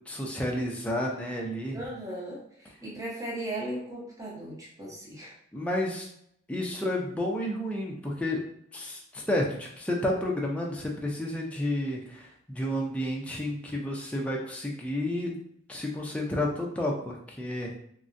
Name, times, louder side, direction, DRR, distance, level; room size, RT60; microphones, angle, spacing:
voice 1, 0.1-1.8 5.5-6.1 6.5-8.4 8.7-15.3 15.7-17.7, left 1 dB, 5° left, -2 dB, 0.4 m, -31 dB
voice 2, 1.7-5.3, right 1 dB, 15° right, -5 dB, 0.9 m, -37 dB
3.6 x 2.1 x 2.5 m, 0.70 s
head